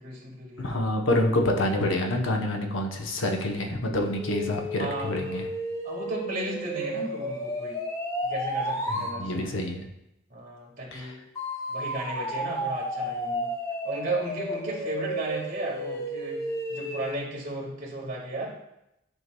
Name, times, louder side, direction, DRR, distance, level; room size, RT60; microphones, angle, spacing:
voice 1, 0.0-0.8 4.8-5.4 5.8-7.8 8.2-9.5 10.3-11.2 11.7-13.5 13.8-18.6, right 2 dB, 40° right, -3 dB, 1.7 m, -35 dB
voice 2, 0.6-5.5 8.9-9.9 10.9-11.1, left 1 dB, 75° left, 2 dB, 0.8 m, -27 dB
sound 1, 3.9-9.2 11.4-17.2, equal, 15° left, 0.7 m, -32 dB
9.6 x 4.6 x 2.2 m, 0.84 s
head